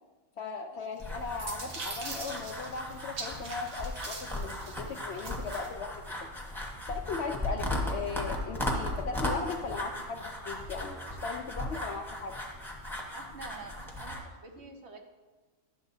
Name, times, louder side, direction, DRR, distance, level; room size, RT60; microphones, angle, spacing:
voice 1, 0.4-5.9 6.9-12.4, left 4 dB, 60° left, 4 dB, 0.7 m, -38 dB
sound 1, 1.0-14.2, left 1 dB, ahead, 1.0 m, -37 dB
sound 2, 1.0-5.7, right 3 dB, 75° right, 1.5 m, -43 dB
voice 2, 13.1-15.0, right 3 dB, 55° right, 3 dB, 1.0 m, -47 dB
11.5 x 7.1 x 2.7 m, 1.3 s
omnidirectional pair, 1.5 m